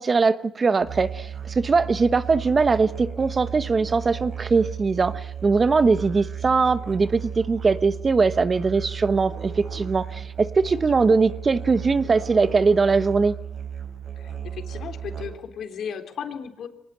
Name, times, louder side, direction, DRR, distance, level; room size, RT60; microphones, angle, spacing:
voice 1, 0.0-13.3, right 4 dB, 35° right, 1.1 m, -21 dB
Musical instrument, 0.8-15.5, right 8 dB, 55° right, 7.0 m, -35 dB
voice 2, 14.1-16.7, left 7 dB, 65° left, 3.6 m, -35 dB
24.0 x 19.0 x 8.9 m
cardioid pair, 90°, 0 cm